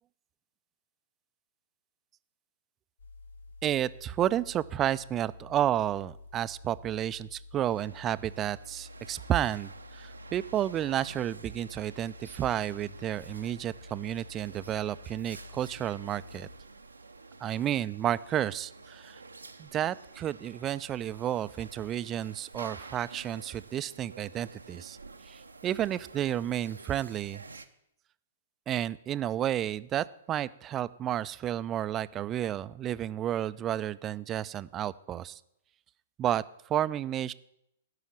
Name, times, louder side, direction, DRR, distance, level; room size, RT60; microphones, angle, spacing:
sound 1, 3.0-16.6, left 2 dB, 70° left, 1.0 m, -50 dB
voice 1, 3.6-16.5 17.4-19.2 19.6-25.0 25.3-27.4 28.7-35.4 36.2-37.3, right 11 dB, 25° right, 17 dB, 0.4 m, -31 dB
sound 2, 7.7-27.7, right 3 dB, 85° right, 0.7 m, -50 dB
12.5 x 5.7 x 8.6 m, 0.79 s
figure-of-eight pair, 115°, 0 cm